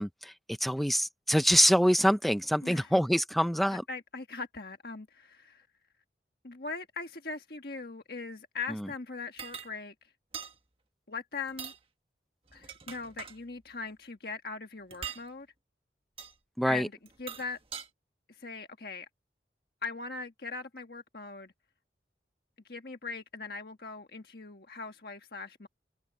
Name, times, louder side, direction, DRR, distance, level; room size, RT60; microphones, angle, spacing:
voice 1, 0.0-3.8 16.6-16.9, equal, ahead, 0.6 m, -25 dB
voice 2, 2.6-2.9 3.7-5.7 6.4-9.9 11.1-11.7 12.5-15.5 16.6-16.9 17.2-17.6 18.3-19.1 19.8-21.5 22.6-25.7, left 4 dB, 60° left, 1.5 m, -40 dB
sound 1, 9.4-9.7 10.3-10.5 11.5-11.8 12.5-13.4 14.9-15.2 16.2-16.3 17.1-17.9, right 7 dB, 30° right, 1.5 m, -42 dB
head